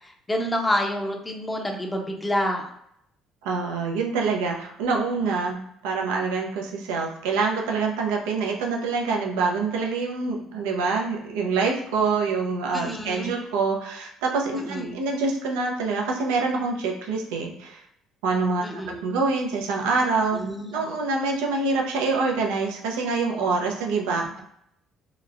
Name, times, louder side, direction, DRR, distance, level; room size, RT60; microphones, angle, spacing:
voice 1, 0.0-2.7 12.7-13.4 14.5-15.0 18.6-19.0 20.3-21.0 24.2-24.4, equal, 15° left, 2 dB, 0.7 m, -28 dB
voice 2, 3.4-17.8 18.2-20.4 20.7-24.2, right 4 dB, 85° right, 0 dB, 0.6 m, -26 dB
2.9 x 2.0 x 2.4 m, 0.72 s
supercardioid pair, 70°, 0 cm